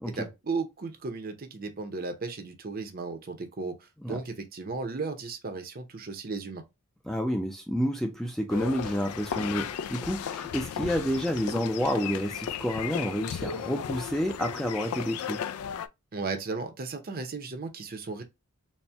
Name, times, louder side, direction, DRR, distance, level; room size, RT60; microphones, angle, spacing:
voice 1, 0.0-6.6 16.1-18.2, right 4 dB, 40° right, 0.7 m, -35 dB
voice 2, 7.1-15.4, equal, ahead, 0.4 m, -29 dB
sound 1, 8.5-15.9, left 8 dB, 80° left, 0.3 m, -35 dB
4.2 x 2.1 x 3.4 m
head